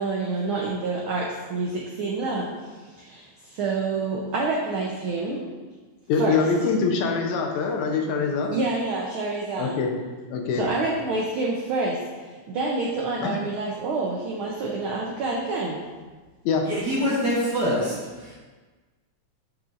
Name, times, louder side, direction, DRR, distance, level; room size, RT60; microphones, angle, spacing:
voice 1, 0.0-5.4 6.2-6.4 8.5-9.8 10.6-15.8, right 3 dB, 80° right, -2 dB, 1.2 m, -28 dB
voice 2, 6.1-8.5 9.6-9.9 10.3-10.6 13.2-13.4 16.5-16.7, left 5 dB, 80° left, 2 dB, 2.2 m, -24 dB
voice 3, 16.7-17.9 18.2-18.4, equal, 45° right, -7 dB, 1.6 m, -24 dB
8.9 x 6.0 x 2.6 m, 1.3 s
omnidirectional pair, 3.3 m